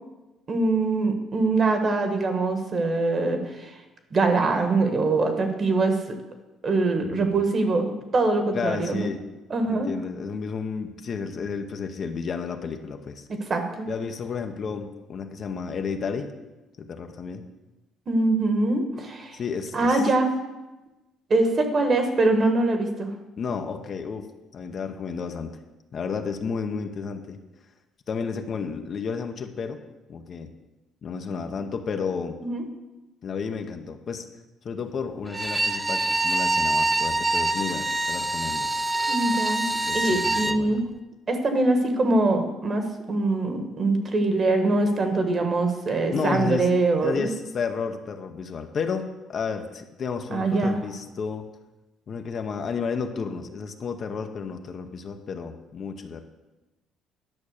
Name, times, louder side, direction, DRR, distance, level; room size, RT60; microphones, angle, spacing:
voice 1, 0.5-3.7 4.1-6.0 6.6-9.1 9.5-9.9 13.5-13.9 18.1-19.4 19.7-20.3 21.3-23.1 32.4-32.6 39.1-39.7 39.9-40.9 41.3-47.3 50.3-50.8, right 2 dB, 35° right, 5 dB, 1.5 m, -23 dB
voice 2, 7.0-7.4 8.5-9.2 9.7-13.3 13.9-16.3 16.8-17.4 19.3-20.0 23.4-24.3 24.5-25.5 25.9-27.4 28.1-29.8 30.1-30.5 31.0-32.4 33.2-34.3 34.6-38.7 39.6-40.8 46.1-46.7 47.0-51.5 52.1-56.2, left 5 dB, 45° left, 5 dB, 0.9 m, -32 dB
Bowed string instrument, 35.3-40.6, right 2 dB, 15° right, 0.4 m, -25 dB
11.0 x 6.1 x 6.6 m, 1.1 s
cardioid pair, 125°, 0 cm